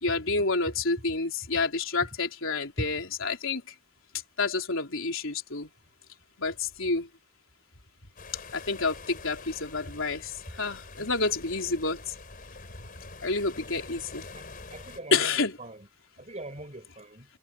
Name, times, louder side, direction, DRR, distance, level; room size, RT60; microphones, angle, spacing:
voice 1, 0.0-3.7 4.4-5.7 6.4-7.1 8.5-12.1 13.2-14.3 15.1-15.6, left 3 dB, 70° left, 3.9 m, -29 dB
sound 1, 8.2-15.0, left 3 dB, 45° left, 5.0 m, -46 dB
voice 2, 14.3-15.9 16.2-17.3, right 1 dB, 35° right, 6.4 m, -40 dB
head